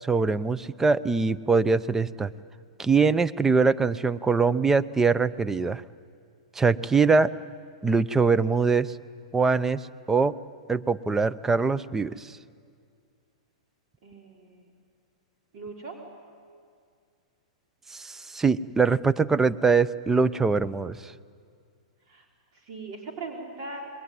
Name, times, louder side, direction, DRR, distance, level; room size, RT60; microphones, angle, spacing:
voice 1, 0.0-2.3 2.8-5.8 6.5-7.3 7.8-9.0 9.3-10.4 10.7-12.4 17.9-21.1, right 4 dB, 10° right, 16 dB, 0.7 m, -23 dB
voice 2, 14.0-14.6 15.5-16.0 22.1-22.2 22.7-23.9, right 3 dB, 55° right, 0 dB, 4.5 m, -39 dB
28.5 x 21.5 x 9.6 m, 2.2 s
hypercardioid pair, 110°, 3 cm